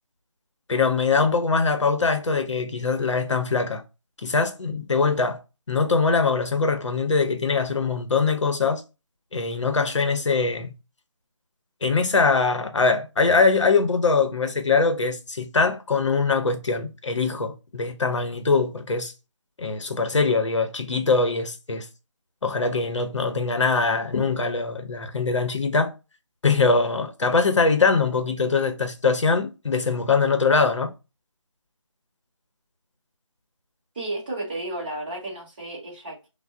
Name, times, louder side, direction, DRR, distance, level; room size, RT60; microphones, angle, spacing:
voice 1, 0.7-3.8 4.2-5.4 5.7-8.8 9.3-10.7 11.8-19.1 19.6-21.9 22.4-25.9 26.4-30.9, left 4 dB, 65° left, 0.7 m, -22 dB
voice 2, 33.9-36.3, right 2 dB, 20° right, 0.7 m, -33 dB
3.3 x 2.0 x 3.6 m
figure-of-eight pair, 165°, 16 cm